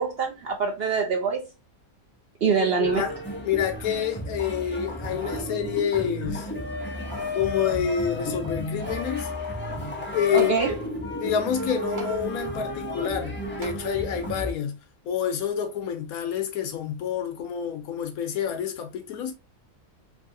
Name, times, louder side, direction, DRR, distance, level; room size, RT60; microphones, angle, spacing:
voice 1, 0.0-1.5 2.4-3.1 10.3-10.7, right 6 dB, 60° right, 0.6 m, -24 dB
voice 2, 2.6-3.1 3.4-6.5 7.3-9.3 10.1-10.5 11.2-14.8 15.0-19.3, left 8 dB, 80° left, 1.2 m, -28 dB
sound 1, 2.8-14.5, left 1 dB, 10° left, 0.5 m, -33 dB
sound 2, 4.9-5.5 6.0-6.1 6.8-7.4 8.4-9.2 10.4-10.6 12.0-12.2 13.6-13.8 14.4-14.5, right 3 dB, 80° right, 1.3 m, -43 dB
3.2 x 2.7 x 2.6 m
omnidirectional pair, 1.5 m